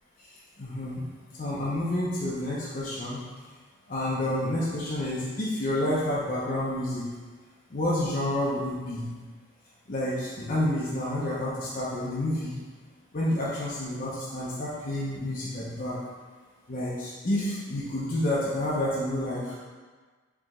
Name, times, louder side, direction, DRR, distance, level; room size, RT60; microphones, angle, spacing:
voice 1, 0.6-1.1 1.4-3.2 3.9-7.0 7.7-9.1 9.9-12.5 13.1-16.0 16.7-19.5, left 1 dB, 40° left, -8 dB, 0.7 m, -29 dB
4.8 x 2.9 x 3.7 m, 1.4 s
head